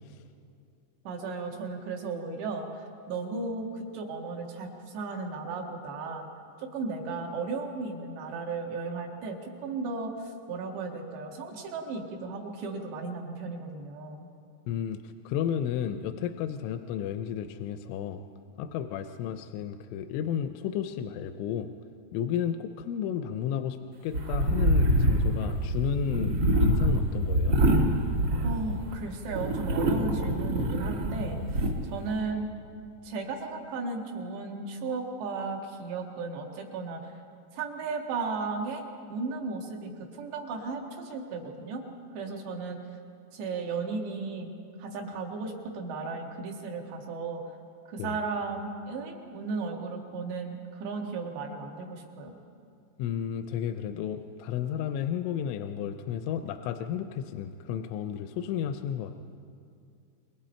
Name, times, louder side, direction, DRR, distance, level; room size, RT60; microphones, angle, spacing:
voice 1, 1.1-6.3 6.6-14.3 28.4-32.5 33.0-37.1 37.5-38.8 39.1-41.8 42.1-42.8 43.3-44.5 44.8-47.4 47.9-52.4, right 4 dB, 70° right, 1 dB, 3.8 m, -35 dB
voice 2, 14.7-18.2 18.6-21.7 22.1-27.6 48.0-48.2 53.0-59.1, left 9 dB, 90° left, 8 dB, 3.1 m, -32 dB
sound 1, 24.1-28.9 29.3-31.7, right 1 dB, 50° right, 1.7 m, -25 dB
28.0 x 22.0 x 4.4 m, 2.5 s
omnidirectional pair, 5.3 m